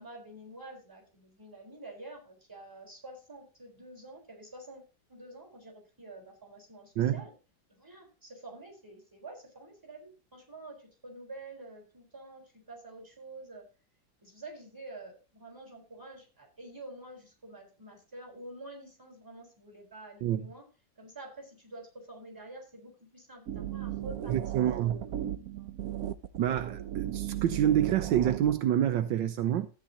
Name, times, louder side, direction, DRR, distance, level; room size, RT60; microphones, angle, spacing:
voice 1, 0.0-4.8 5.1-7.3 7.7-13.7 14.2-20.6 21.0-25.1 25.5-25.7, right 2 dB, 10° right, 4.1 m, -48 dB
sound 1, 23.5-28.6, right 11 dB, 60° right, 1.0 m, -36 dB
voice 2, 24.3-25.0 26.4-29.7, right 10 dB, 80° right, 1.4 m, -27 dB
13.5 x 9.0 x 2.8 m
omnidirectional pair, 2.0 m